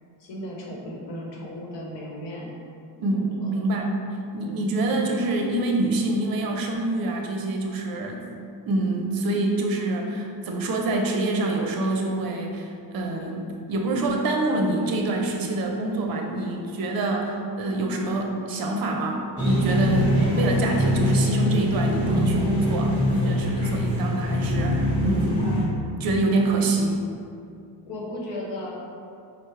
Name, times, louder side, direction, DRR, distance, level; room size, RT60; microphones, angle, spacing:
voice 1, 0.2-2.5 3.1-3.5 4.4-4.7 27.8-28.7, left 1 dB, 65° left, -3 dB, 1.0 m, -36 dB
voice 2, 3.0-3.9 4.3-8.2 8.7-25.5 26.0-27.0, right 2 dB, 50° right, 2 dB, 0.6 m, -26 dB
sound 1, 19.4-25.6, left 1 dB, 10° left, 1.1 m, -23 dB
4.3 x 2.1 x 3.1 m, 2.4 s
cardioid pair, 95°, 45 cm